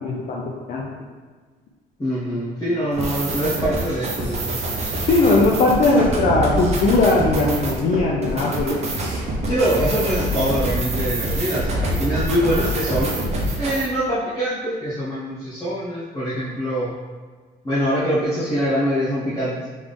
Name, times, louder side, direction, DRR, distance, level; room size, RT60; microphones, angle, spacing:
voice 1, 0.0-0.4 0.7-0.9 5.1-9.0, left 2 dB, 55° left, -2 dB, 0.6 m, -19 dB
voice 2, 2.0-5.0 9.4-13.1 13.6-16.9 17.6-19.7, equal, 20° left, -12 dB, 1.3 m, -24 dB
sound 1, 2.9-13.9, right 1 dB, 40° right, 0.9 m, -25 dB
3.8 x 3.5 x 3.5 m, 1.4 s
cardioid pair, 110°, 17 cm